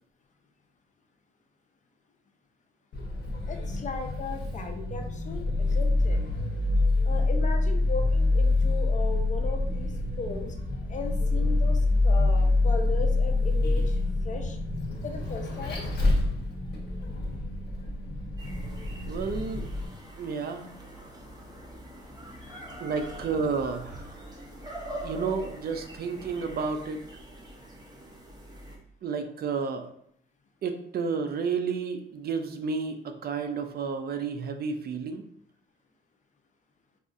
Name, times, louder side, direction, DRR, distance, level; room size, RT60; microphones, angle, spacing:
Vehicle, 2.9-19.9, left 2 dB, 55° left, 1.0 m, -26 dB
voice 1, 3.5-6.2 7.0-10.5 10.9-14.0 14.2-14.6 15.0-15.9 22.4-22.6, left 3 dB, 40° left, 4 dB, 0.6 m, -37 dB
sound 1, 18.4-28.8, right 1 dB, 20° right, 0.7 m, -43 dB
voice 2, 19.1-19.7 20.2-20.7 22.8-24.3 25.0-27.0 29.0-29.9 30.6-35.2, right 5 dB, 50° right, 7 dB, 0.4 m, -31 dB
4.7 x 2.4 x 2.5 m, 0.68 s
cardioid pair, 90°, 20 cm